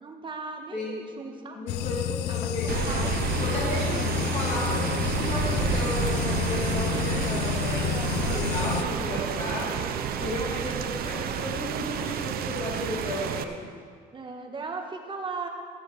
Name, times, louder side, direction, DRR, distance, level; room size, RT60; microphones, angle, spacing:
voice 1, 0.0-1.7 2.9-3.2 3.9-4.2 7.8-8.6 14.1-15.5, right 4 dB, 30° right, 3 dB, 1.5 m, -37 dB
voice 2, 0.7-1.1 1.5-3.1 3.4-4.1 4.3-9.8 10.2-13.7, left 1 dB, 45° left, -4 dB, 2.4 m, -33 dB
sound 1, 1.7-8.8, left 12 dB, 85° left, 0.5 m, -30 dB
Rain, 2.7-13.4, right 8 dB, 60° right, 0.7 m, -30 dB
sound 2, 3.2-10.4, right 3 dB, 10° right, 0.8 m, -41 dB
13.5 x 6.3 x 7.4 m, 2.1 s
cardioid pair, 110°, 17 cm